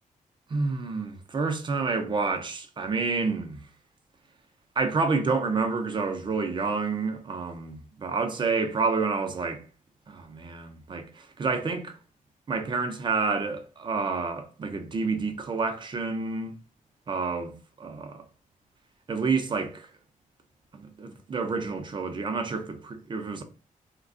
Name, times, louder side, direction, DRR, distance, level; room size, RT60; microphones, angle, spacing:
voice 1, 0.5-3.6 4.8-9.6 10.1-12.0 12.5-16.6 17.1-18.3 19.1-19.9 20.7-23.4, right 4 dB, 35° right, 0.5 m, -29 dB
2.4 x 2.2 x 3.6 m
wide cardioid pair, 135°, 15 cm